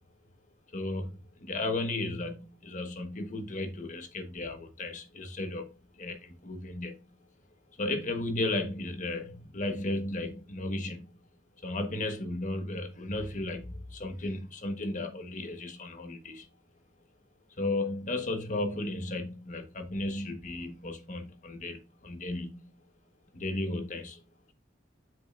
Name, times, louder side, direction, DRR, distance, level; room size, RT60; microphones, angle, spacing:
voice 1, 0.7-7.0 7.8-11.1 11.6-16.5 17.6-22.6 23.3-24.2, left 2 dB, 40° left, 1.2 m, -34 dB
8.3 x 6.6 x 2.5 m
head